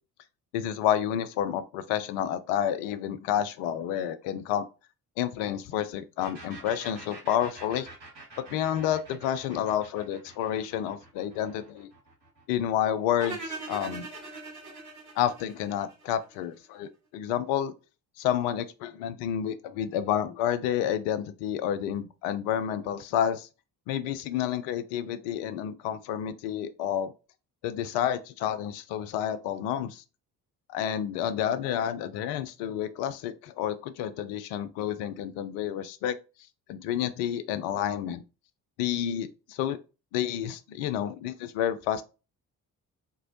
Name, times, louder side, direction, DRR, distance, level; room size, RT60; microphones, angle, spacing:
voice 1, 0.5-4.7 5.2-7.9 8.5-11.9 12.5-14.1 15.2-17.7 18.2-23.5 23.9-27.1 27.6-30.0 30.7-36.2 36.7-38.2 38.8-39.8 40.1-42.0, left 10 dB, 60° left, 0.5 m, -30 dB
sound 1, 6.2-13.7, right 2 dB, 85° right, 0.8 m, -48 dB
sound 2, 13.2-16.3, right 2 dB, 35° right, 1.6 m, -40 dB
3.6 x 2.0 x 2.7 m
figure-of-eight pair, 40°, 49 cm